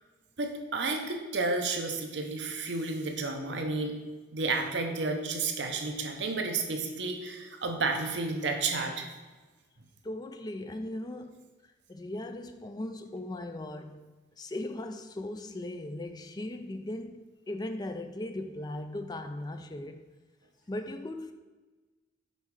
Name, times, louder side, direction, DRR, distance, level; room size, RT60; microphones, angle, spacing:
voice 1, 0.4-3.9 4.3-9.1, right 3 dB, 65° right, 0.7 m, -31 dB
voice 2, 10.0-11.4 11.9-20.1 20.7-21.3, left 1 dB, 20° left, 0.4 m, -38 dB
5.5 x 4.3 x 4.6 m
head